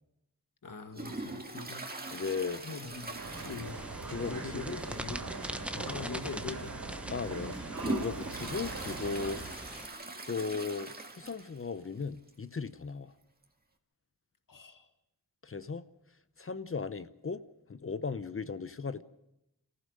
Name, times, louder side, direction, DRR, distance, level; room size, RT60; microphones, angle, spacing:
voice 1, 0.6-2.2 2.6-3.2 3.4-5.3 5.8-6.8 14.5-14.9, left 4 dB, 60° left, 1.8 m, -43 dB
Toilet flush, 0.9-4.4 4.6-4.7 5.2-5.3 6.1-6.2 6.8-11.7 12.0-12.1 12.3-12.4 13.4-13.5, right 2 dB, 25° right, 2.1 m, -41 dB
voice 2, 2.1-2.6 3.3-3.4 4.1-4.8 5.7-5.9 7.1-9.4 10.3-13.1 15.4-15.8 16.4-17.4 17.7-19.0, left 4 dB, 35° left, 0.7 m, -37 dB
sound 1, 3.1-9.5, right 3 dB, 75° right, 3.3 m, -42 dB
sound 2, 3.6-9.9, equal, 5° right, 1.1 m, -43 dB
27.5 x 15.0 x 6.6 m
wide cardioid pair, 85°, 36 cm